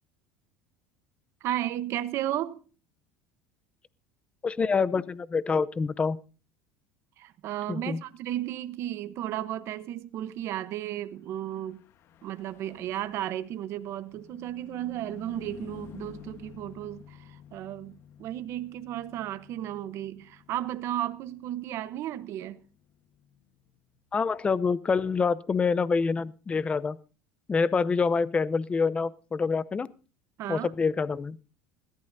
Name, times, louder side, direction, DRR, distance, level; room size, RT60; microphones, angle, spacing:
voice 1, 1.4-2.6 7.2-11.8 12.2-22.6 30.4-30.7, right 12 dB, 55° right, 1.0 m, -34 dB
voice 2, 4.4-6.2 7.7-8.0 24.1-27.0 27.5-29.9 30.5-31.4, left 5 dB, 20° left, 0.7 m, -26 dB
Car passing by / Truck, 11.3-25.0, left 9 dB, 50° left, 1.3 m, -52 dB
21.0 x 14.5 x 2.7 m
supercardioid pair, 115°, 6 cm